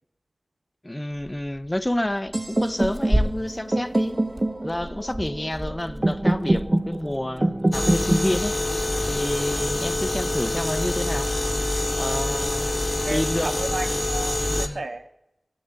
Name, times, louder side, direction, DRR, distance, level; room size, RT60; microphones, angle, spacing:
voice 1, 0.8-4.2 4.6-8.6 9.1-11.3 12.0-12.7 13.1-13.5 14.5-14.8, left 1 dB, 20° left, 0.5 m, -29 dB
Tearing, 1.1-13.7, equal, 20° right, 1.3 m, -35 dB
sound 1, 2.3-10.3, right 1 dB, 40° right, 0.7 m, -26 dB
sound 2, 7.7-14.7, left 2 dB, 40° left, 0.9 m, -26 dB
voice 2, 13.1-15.1, right 2 dB, 85° right, 0.6 m, -33 dB
8.7 x 7.6 x 8.0 m
wide cardioid pair, 45°, 0 cm